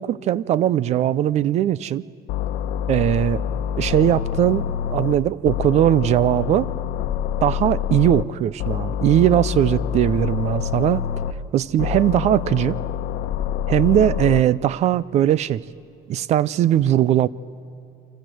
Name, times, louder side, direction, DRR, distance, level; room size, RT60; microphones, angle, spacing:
voice 1, 0.0-2.0 2.9-3.4 3.8-4.7 4.9-6.7 7.4-11.0 11.5-12.8 13.7-15.6 16.1-17.3, right 11 dB, 40° right, 20 dB, 0.5 m, -19 dB
sound 1, 2.3-5.1 5.4-8.2 8.6-11.3 11.8-14.4, left 9 dB, 85° left, 1.2 m, -26 dB
30.0 x 25.0 x 7.8 m, 2.6 s
cardioid pair, 175°, 17 cm